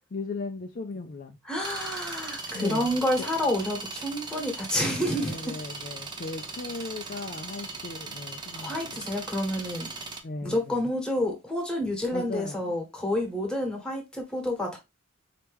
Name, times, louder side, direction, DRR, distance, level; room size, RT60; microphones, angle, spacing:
voice 1, 0.1-1.4 2.5-3.3 5.1-9.1 10.2-10.9 12.1-12.8, left 3 dB, 40° left, 0.4 m, -37 dB
voice 2, 1.4-5.5 8.5-9.9 10.4-14.8, left 1 dB, 5° left, 1.3 m, -29 dB
sound 1, 1.6-10.2, right 3 dB, 20° right, 0.6 m, -39 dB
4.5 x 2.9 x 3.4 m
head